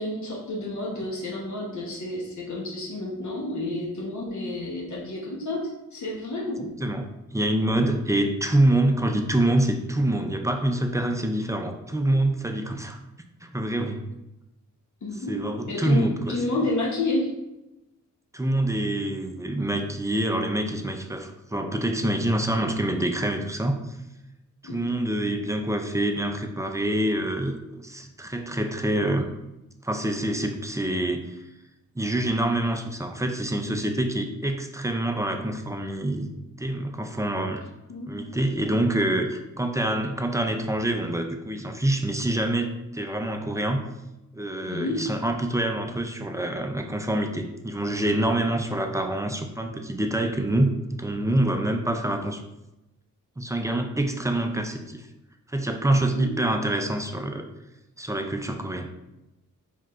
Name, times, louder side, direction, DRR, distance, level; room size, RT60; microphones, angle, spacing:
voice 1, 0.0-6.7 15.0-15.4 15.7-17.3 24.6-24.9 37.9-38.1 38.7-39.2 44.7-45.0 56.0-56.4, left 2 dB, 65° left, -3 dB, 1.0 m, -30 dB
voice 2, 6.8-13.0 13.4-14.0 15.3-16.3 18.3-23.8 24.6-29.3 29.8-31.3 32.0-36.3 36.6-37.6 38.1-43.8 44.3-52.4 53.4-55.1 55.5-57.4 58.0-58.9, right 1 dB, 10° right, 5 dB, 0.4 m, -26 dB
4.6 x 3.6 x 2.4 m, 0.94 s
wide cardioid pair, 100°, 32 cm